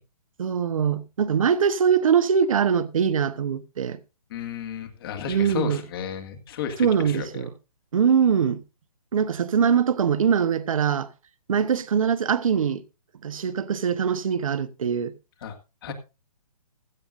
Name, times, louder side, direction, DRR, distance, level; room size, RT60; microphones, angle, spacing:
voice 1, 0.4-4.0 5.3-5.8 6.8-7.5 7.9-8.6 9.1-11.1 11.5-12.8 13.2-15.1 15.9-16.0, right 7 dB, 60° right, 1.2 m, -22 dB
voice 2, 4.3-7.3 15.4-15.5 15.8-15.9, left 8 dB, 40° left, 2.1 m, -32 dB
16.0 x 12.5 x 2.6 m
hypercardioid pair, 155°, 19 cm